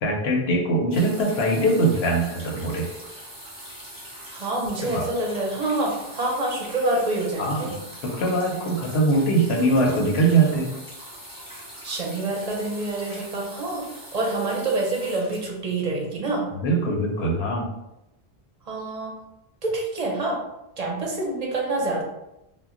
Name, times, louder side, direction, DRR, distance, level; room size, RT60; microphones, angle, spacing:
voice 1, 0.0-2.9 4.8-5.1 7.4-7.8 8.0-10.7 16.6-17.7, right 2 dB, 80° left, 0 dB, 0.9 m, -22 dB
sound 1, 0.9-16.3 17.2-17.3, equal, 5° right, 0.7 m, -42 dB
voice 2, 4.3-7.7 11.8-16.5 18.7-19.2 19.6-20.4 20.8-22.0, right 2 dB, 45° right, -2 dB, 0.6 m, -27 dB
2.2 x 2.1 x 3.6 m, 0.88 s
omnidirectional pair, 1.1 m